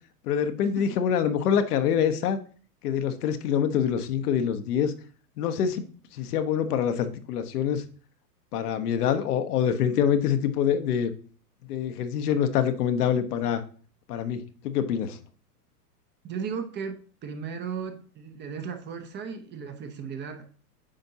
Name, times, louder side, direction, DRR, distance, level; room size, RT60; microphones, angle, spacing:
voice 1, 0.3-2.4 2.8-4.9 5.4-7.8 8.5-11.1 11.7-13.6 14.1-15.2, left 8 dB, 70° left, 1.0 m, -25 dB
voice 2, 16.2-20.5, right 6 dB, 25° right, 0.7 m, -36 dB
8.8 x 5.2 x 2.8 m
hypercardioid pair, 115°, 48 cm